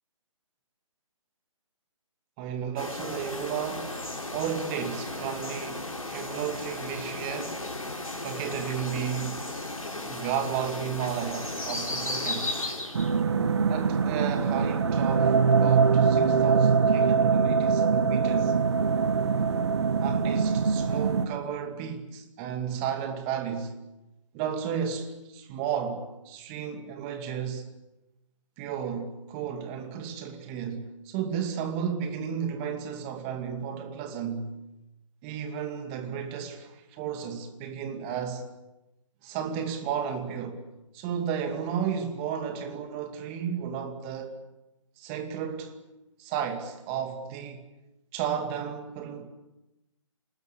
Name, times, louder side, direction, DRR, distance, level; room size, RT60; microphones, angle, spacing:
voice 1, 2.4-4.0 4.3-7.6 8.2-9.4 10.0-12.6 13.7-18.5 20.0-23.8 24.3-27.7 28.6-34.6 35.2-38.5 39.2-40.6 40.9-44.3 45.0-45.8 46.2-47.6 48.1-49.3, right 8 dB, 20° right, 2.4 m, -33 dB
sound 1, 2.8-13.2, left 2 dB, 80° left, 4.4 m, -35 dB
sound 2, 12.9-21.3, right 5 dB, 55° right, 1.6 m, -23 dB
28.5 x 20.0 x 8.2 m
figure-of-eight pair, 140°, 17 cm